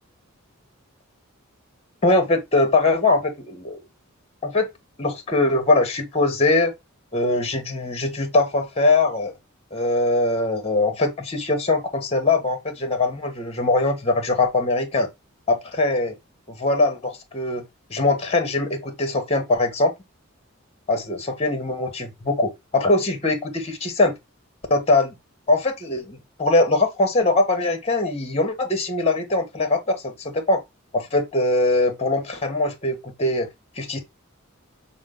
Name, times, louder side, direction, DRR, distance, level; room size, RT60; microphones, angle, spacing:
voice 1, 2.0-3.8 4.4-4.7 5.0-6.7 7.1-9.3 9.7-15.1 15.5-16.1 16.5-17.6 17.9-19.9 20.9-24.1 24.7-25.1 25.5-30.6 30.9-33.5 33.8-34.0, left 2 dB, 30° left, 1.2 m, -22 dB
6.3 x 2.2 x 3.8 m
head